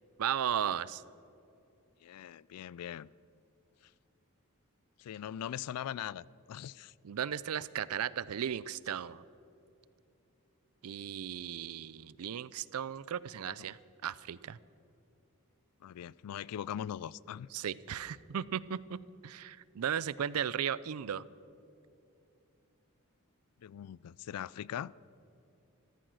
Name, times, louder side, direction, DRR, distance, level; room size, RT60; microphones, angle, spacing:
voice 1, 0.2-1.0 7.0-9.2 10.8-14.6 17.5-19.0 19.2-21.2, right 9 dB, 75° right, 19 dB, 0.4 m, -36 dB
voice 2, 2.0-3.1 5.0-6.9 13.5-13.7 15.8-17.5 23.6-24.9, left 10 dB, 85° left, 23 dB, 0.3 m, -41 dB
14.0 x 13.5 x 6.4 m, 2.8 s
head